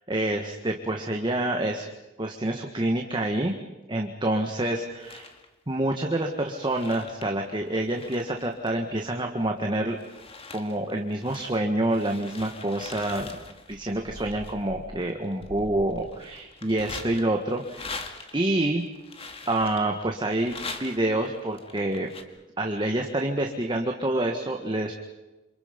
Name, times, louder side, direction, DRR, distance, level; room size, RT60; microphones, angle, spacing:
voice 1, 0.1-1.9 2.2-3.6 3.9-5.3 5.7-10.0 10.5-13.3 13.7-17.9 18.3-18.8 19.5-22.1 22.6-24.9, right 1 dB, 25° right, 3 dB, 1.7 m, -27 dB
sound 1, 4.8-5.5 6.1-9.5 9.9-22.2, left 3 dB, 30° left, 2.1 m, -43 dB
27.5 x 27.5 x 5.3 m, 1.0 s
head